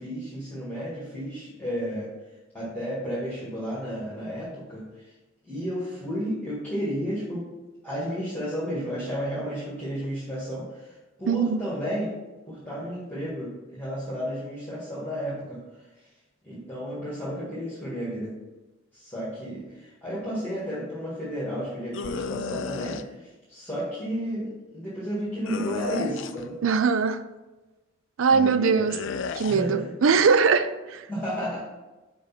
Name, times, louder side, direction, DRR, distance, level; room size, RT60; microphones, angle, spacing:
voice 1, 0.0-2.1 2.5-5.1 5.4-7.4 7.8-12.1 12.5-15.9 16.4-18.3 18.9-26.5 28.3-28.8 29.5-29.9 31.1-31.6, equal, 10° left, 1.8 m, -32 dB
voice 2, 11.3-11.7 26.6-27.3 28.2-29.0 29.4-31.1, right 5 dB, 65° right, 0.4 m, -21 dB
sound 1, 21.9-23.0 25.5-26.5 28.9-29.6, left 6 dB, 60° left, 0.4 m, -33 dB
5.2 x 5.1 x 5.8 m
head